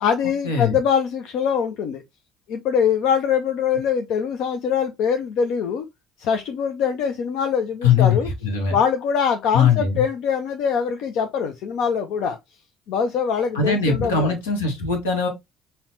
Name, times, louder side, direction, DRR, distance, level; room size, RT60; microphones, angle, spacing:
voice 1, 0.0-2.0 2.5-5.8 6.2-8.3 8.7-12.4 12.9-14.3, left 7 dB, 65° left, 0.4 m, -23 dB
voice 2, 7.8-8.2 8.4-8.7 9.5-10.0 13.5-15.3, left 6 dB, 85° left, 1.0 m, -20 dB
5.5 x 2.1 x 2.6 m
hypercardioid pair, 55°, 0 cm